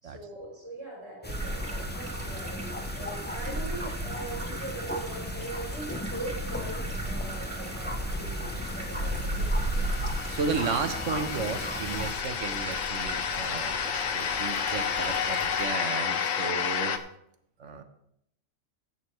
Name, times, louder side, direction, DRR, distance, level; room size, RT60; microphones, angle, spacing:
voice 1, 0.0-9.5, right 2 dB, 15° right, -5 dB, 4.4 m, -41 dB
sound 1, 1.2-12.1, left 1 dB, 15° left, 0.4 m, -38 dB
sound 2, 1.3-15.7, right 1 dB, 55° right, 2.2 m, -35 dB
sound 3, 8.6-17.0, left 7 dB, 80° left, 1.2 m, -31 dB
voice 2, 10.3-17.0 17.6-17.8, right 5 dB, 70° right, 7 dB, 1.3 m, -34 dB
16.0 x 8.7 x 3.2 m, 0.73 s
omnidirectional pair, 1.3 m